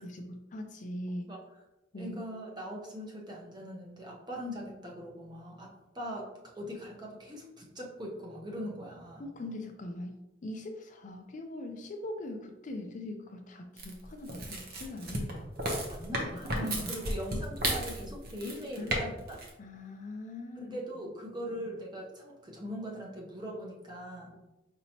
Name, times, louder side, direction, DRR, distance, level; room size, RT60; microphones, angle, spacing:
voice 1, 0.0-1.3 1.9-2.2 9.2-15.5 16.1-16.9 18.8-19.0 19.6-20.8, left 1 dB, 45° left, 5 dB, 0.4 m, -41 dB
voice 2, 2.0-6.3 6.5-9.3 15.9-19.4 20.6-24.4, equal, 25° right, -2 dB, 0.9 m, -41 dB
sound 1, 13.8-19.0 19.3-19.5, right 1 dB, 55° right, 0.9 m, -33 dB
5.1 x 2.9 x 2.8 m, 0.97 s
head